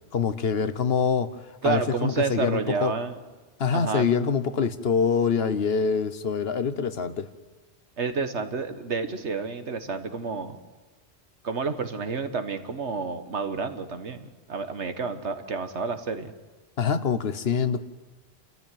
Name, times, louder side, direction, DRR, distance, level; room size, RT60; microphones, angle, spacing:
voice 1, 0.1-1.3 1.6-2.9 3.6-7.3 16.8-17.8, left 6 dB, 65° left, 11 dB, 1.3 m, -25 dB
voice 2, 1.6-3.2 3.7-4.1 8.0-10.6 11.4-16.3, right 4 dB, 80° right, 8 dB, 1.7 m, -30 dB
29.0 x 14.0 x 9.2 m, 1.3 s
omnidirectional pair, 1.1 m